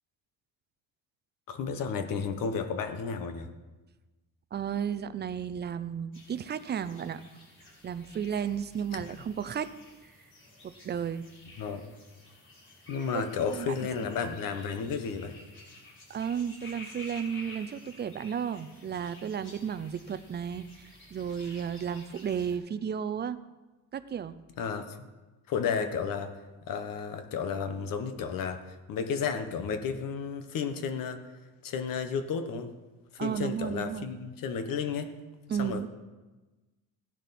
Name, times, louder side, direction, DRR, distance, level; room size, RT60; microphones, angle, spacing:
voice 1, 1.5-3.5 8.9-9.0 11.6-11.9 12.9-15.4 24.6-25.0 25.5-26.4 26.7-31.2 31.6-32.7 33.1-35.1 35.6-35.9, left 6 dB, 65° left, 8 dB, 1.3 m, -32 dB
voice 2, 4.5-7.2 7.8-9.7 10.0-10.1 10.6-11.2 13.5-14.1 16.1-23.4 23.9-24.3 33.2-34.1 35.5-35.9, right 8 dB, 30° right, 13 dB, 0.5 m, -33 dB
sound 1, 6.1-22.6, left 2 dB, 35° left, 4.9 m, -52 dB
16.0 x 10.5 x 4.3 m, 1.2 s
cardioid pair, 155°, 35 cm